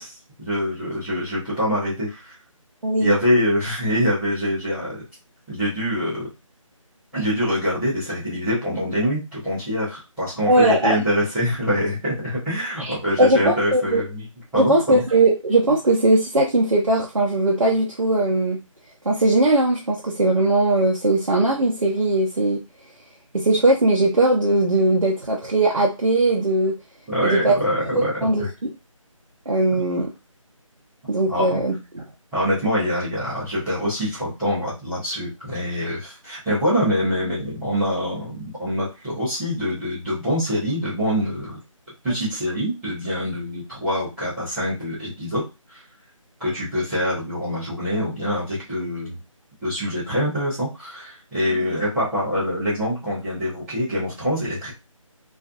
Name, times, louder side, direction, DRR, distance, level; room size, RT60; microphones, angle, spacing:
voice 1, 0.0-2.3 3.0-5.0 5.5-6.3 7.1-14.2 14.5-15.0 27.1-28.5 31.3-31.6 32.3-41.6 42.0-45.4 45.7-45.8 46.4-49.2 49.6-54.7, equal, ahead, -16 dB, 0.5 m, -25 dB
voice 2, 2.8-3.1 10.5-11.0 12.8-14.0 14.5-18.6 19.1-22.6 23.3-26.7 27.2-27.6 27.9-28.5 29.5-30.1 31.1-32.0 51.5-51.6, right 2 dB, 70° right, -2 dB, 0.6 m, -19 dB
2.5 x 2.3 x 2.4 m, 0.27 s
figure-of-eight pair, 160°, 17 cm